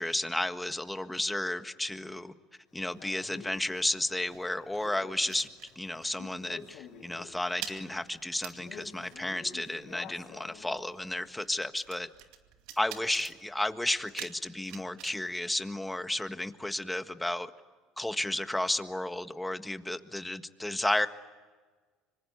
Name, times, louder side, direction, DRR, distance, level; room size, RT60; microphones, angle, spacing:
voice 1, 0.0-2.3 2.7-5.5 5.7-12.1 12.8-17.5 18.0-21.1, left 1 dB, 5° left, 9 dB, 1.6 m, -32 dB
Male speech man speaking, 2.8-11.3, left 7 dB, 60° left, 3.9 m, -51 dB
sound 1, 2.8-6.2 6.4-6.7 7.0-16.4, right 12 dB, 75° right, 2.4 m, -49 dB
26.0 x 25.5 x 8.5 m, 1.4 s
supercardioid pair, 95°, 0 cm